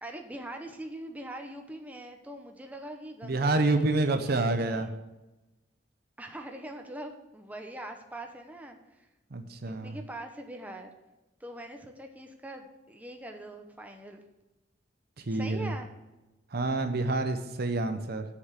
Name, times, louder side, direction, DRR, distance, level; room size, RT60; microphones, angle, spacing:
voice 1, 0.0-5.0 6.2-9.1 9.6-10.9 11.4-14.2 15.3-15.9, right 1 dB, 10° right, 3 dB, 0.9 m, -43 dB
voice 2, 3.2-4.9 9.3-10.0 15.2-15.7 16.5-18.3, right 2 dB, 55° right, 8 dB, 0.8 m, -28 dB
7.3 x 7.2 x 6.6 m, 1.0 s
head